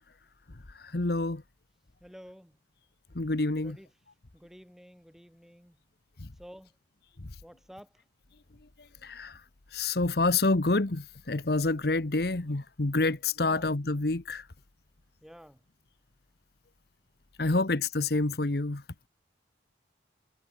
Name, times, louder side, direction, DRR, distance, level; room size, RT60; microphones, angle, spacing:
voice 1, 0.8-1.4 3.1-3.8 6.2-6.3 9.0-9.4 9.7-14.4 17.4-18.8, left 3 dB, 55° left, 1.1 m, -28 dB
voice 2, 2.0-2.6 3.5-3.9 4.3-5.8 6.4-6.7 7.4-7.9 13.4-13.6 15.2-15.6 17.4-17.7 18.1-18.2, equal, ahead, 3.9 m, -51 dB
head